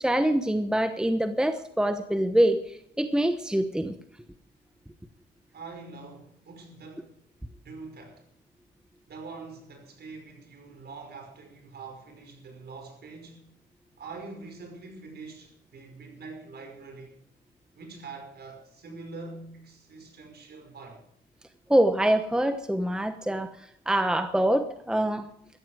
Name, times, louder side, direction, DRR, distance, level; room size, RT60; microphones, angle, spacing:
voice 1, 0.0-3.9 21.7-23.5 23.9-25.3, right 1 dB, 5° right, 1.0 m, -25 dB
voice 2, 5.5-7.1 7.6-8.3 9.1-13.5 14.0-17.2 17.7-21.0, right 4 dB, 55° right, 5.3 m, -44 dB
14.5 x 14.0 x 4.9 m
cardioid pair, 90°, 20 cm